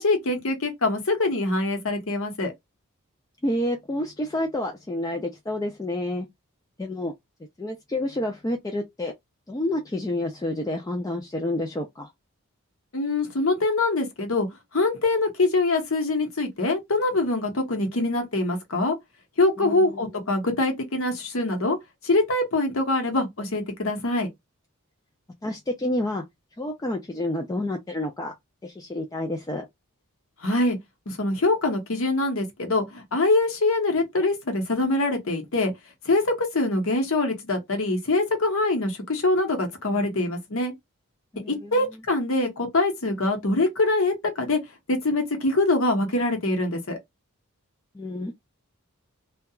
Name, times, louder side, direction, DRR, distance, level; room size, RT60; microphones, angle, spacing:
voice 1, 0.0-2.5 12.9-14.5 14.7-18.9 19.4-21.8 22.0-24.3 30.4-30.8 31.1-35.7 36.0-40.7 41.5-44.6 44.9-47.0, left 2 dB, 65° left, 0.9 m, -24 dB
voice 2, 3.4-6.3 6.8-7.1 7.6-9.1 9.5-12.1 19.6-20.1 25.4-26.2 26.6-28.3 28.6-29.7 41.3-41.9 47.9-48.3, left 1 dB, 15° left, 0.3 m, -29 dB
2.7 x 2.2 x 2.3 m
head